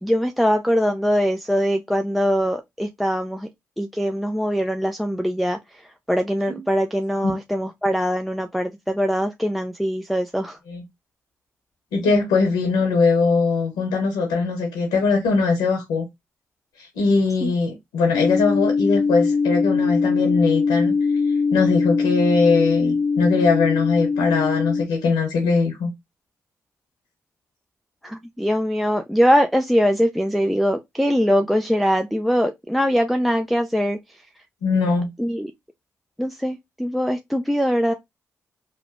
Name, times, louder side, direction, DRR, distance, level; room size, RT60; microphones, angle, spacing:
voice 1, 0.0-3.5 3.8-10.6 17.4-17.5 28.0-34.2 35.2-35.5 36.2-37.9, equal, ahead, 0.4 m, -22 dB
voice 2, 11.9-16.1 16.8-20.9 21.5-25.9 34.6-35.1, left 4 dB, 90° left, 0.9 m, -21 dB
sound 1, 18.1-24.8, left 5 dB, 45° left, 0.6 m, -21 dB
3.1 x 2.1 x 2.5 m
supercardioid pair, 45°, 7 cm